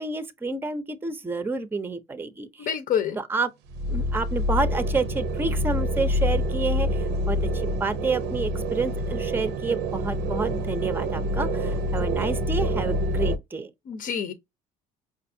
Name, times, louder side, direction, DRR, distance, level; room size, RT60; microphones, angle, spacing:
voice 1, 0.0-2.7 3.2-3.5 3.9-13.7, right 3 dB, 10° right, 0.5 m, -29 dB
voice 2, 2.6-3.2 13.9-14.3, left 8 dB, 60° left, 0.7 m, -27 dB
sound 1, 3.7-13.4, equal, 90° right, 0.7 m, -26 dB
5.2 x 2.4 x 2.6 m
cardioid pair, 110°, 17 cm